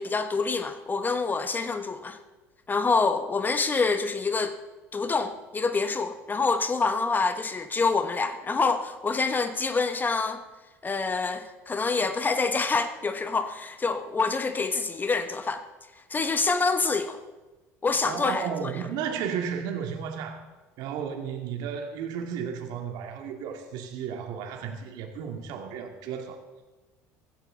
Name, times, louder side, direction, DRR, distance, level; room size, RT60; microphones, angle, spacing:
voice 1, 0.0-2.2 2.7-4.6 4.9-10.4 10.8-15.6 16.1-17.2 17.8-18.7, left 4 dB, 25° left, 9 dB, 1.3 m, -26 dB
voice 2, 18.0-20.4 20.8-26.4, right 7 dB, 65° right, 4 dB, 2.2 m, -33 dB
16.0 x 15.5 x 3.9 m, 1.2 s
hypercardioid pair, 70°, 7 cm